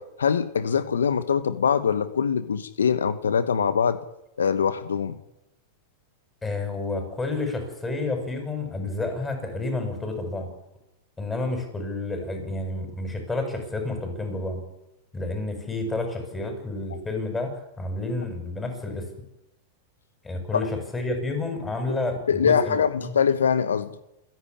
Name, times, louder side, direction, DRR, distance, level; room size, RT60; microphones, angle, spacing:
voice 1, 0.0-4.0 4.4-5.2 20.5-20.6 21.9-22.0 22.3-23.9, left 7 dB, 85° left, 15 dB, 1.1 m, -23 dB
voice 2, 6.4-10.5 11.2-14.6 15.1-19.1 20.2-22.8, left 2 dB, 15° left, 5 dB, 7.5 m, -30 dB
28.0 x 10.5 x 10.0 m, 0.90 s
hypercardioid pair, 105°, 0 cm